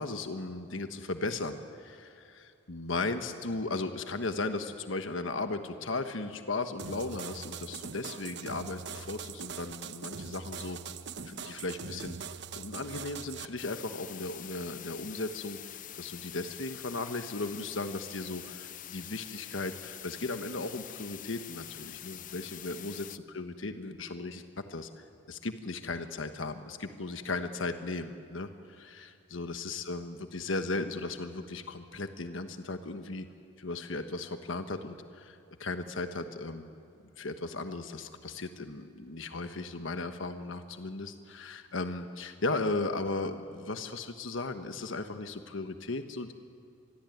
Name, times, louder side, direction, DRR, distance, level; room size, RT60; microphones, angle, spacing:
voice 1, 0.0-10.8 11.2-12.2 12.6-24.4 24.7-33.3 33.6-36.7 37.2-46.3, left 3 dB, 70° left, 8 dB, 1.3 m, -36 dB
sound 1, 6.8-13.5, right 6 dB, 60° right, 1.1 m, -42 dB
sound 2, 13.6-23.2, left 12 dB, 40° left, 0.5 m, -45 dB
26.0 x 21.5 x 9.4 m, 2.7 s
head